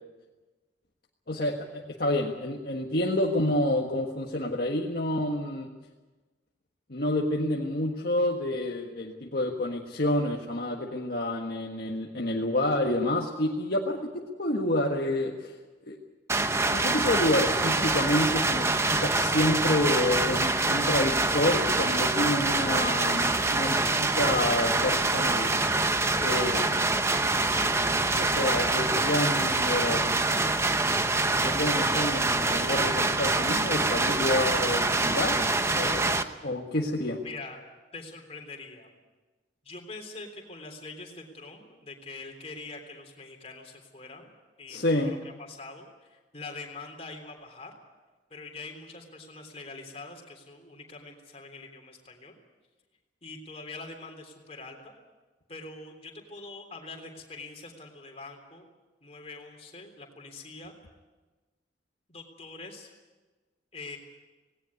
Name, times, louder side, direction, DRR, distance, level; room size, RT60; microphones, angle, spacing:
voice 1, 1.3-5.7 6.9-14.0 14.4-15.5 15.9-16.0 16.7-25.5 26.2-26.8 28.2-30.3 31.3-37.2 44.7-45.1, left 1 dB, 55° left, 0 dB, 1.6 m, -28 dB
sound 1, 16.3-36.2, right 2 dB, 15° right, 0.8 m, -25 dB
voice 2, 37.2-37.6 37.9-38.9 39.6-44.3 44.6-47.7 48.3-52.4 53.2-54.9 55.5-58.7 59.0-60.7 62.1-62.9 63.7-64.0, left 3 dB, 35° left, 2 dB, 3.5 m, -44 dB
19.0 x 17.5 x 9.6 m, 1.3 s
head